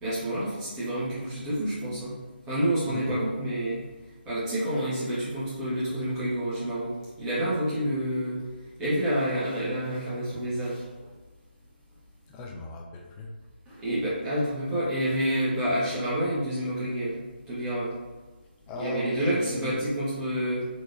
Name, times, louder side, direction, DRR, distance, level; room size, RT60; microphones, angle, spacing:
voice 1, 0.0-2.2 2.5-3.8 4.2-8.4 8.8-10.8 13.7-17.2 17.5-17.9 18.8-20.7, right 1 dB, 10° right, -11 dB, 1.1 m, -28 dB
voice 2, 2.9-3.2 12.3-13.3 18.7-19.8, left 2 dB, 10° left, 1 dB, 0.3 m, -37 dB
4.0 x 2.8 x 2.5 m, 1.3 s
figure-of-eight pair, 160°, 6 cm